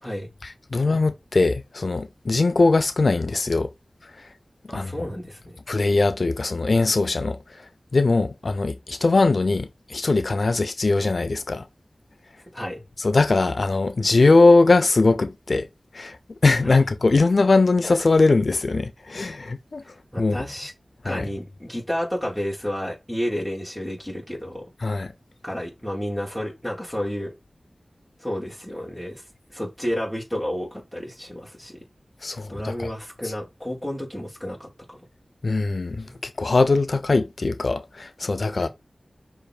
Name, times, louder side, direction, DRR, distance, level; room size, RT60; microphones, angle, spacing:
voice 1, 0.4-3.7 4.7-4.9 5.7-7.4 7.9-11.6 13.0-15.7 15.9-16.2 16.4-19.8 20.2-20.4 21.0-21.3 24.8-25.1 32.2-32.9 33.2-33.3 35.4-38.7, left 3 dB, 70° left, 0.4 m, -21 dB
voice 2, 4.7-5.6 12.5-12.8 16.6-16.8 20.1-20.7 21.0-24.7 25.4-27.3 28.2-29.2 29.5-31.8 32.5-35.0 36.0-36.2 38.5-38.7, equal, ahead, 3.4 m, -31 dB
6.6 x 3.3 x 2.2 m
wide cardioid pair, 55°, 0 cm